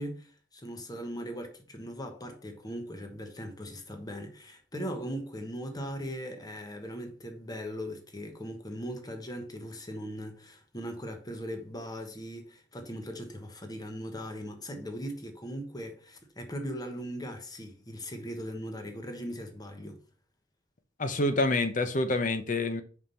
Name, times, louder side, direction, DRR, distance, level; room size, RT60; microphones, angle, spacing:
voice 1, 0.0-20.0, equal, 20° left, 1.2 m, -39 dB
voice 2, 21.0-22.8, left 2 dB, 45° left, 0.8 m, -27 dB
5.4 x 4.8 x 5.6 m
head